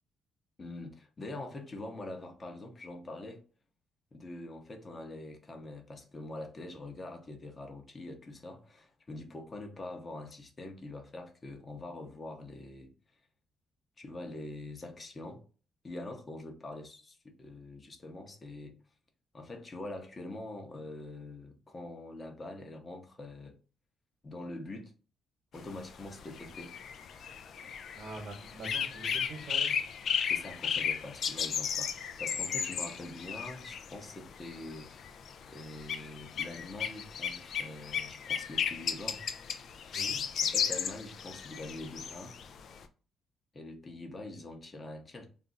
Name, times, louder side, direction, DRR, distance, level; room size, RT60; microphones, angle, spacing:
voice 1, 0.6-3.4 4.1-12.9 14.0-15.4 15.8-18.8 19.3-23.6 24.2-24.9 25.5-26.7 30.3-39.2 40.4-42.4 43.5-45.3, left 2 dB, 30° left, 0.7 m, -44 dB
sound 1, 25.6-42.8, left 7 dB, 65° left, 0.3 m, -35 dB
voice 2, 27.9-29.8 39.9-40.2, right 2 dB, 60° right, 1.0 m, -44 dB
2.5 x 2.0 x 3.8 m
cardioid pair, 90°, 0 cm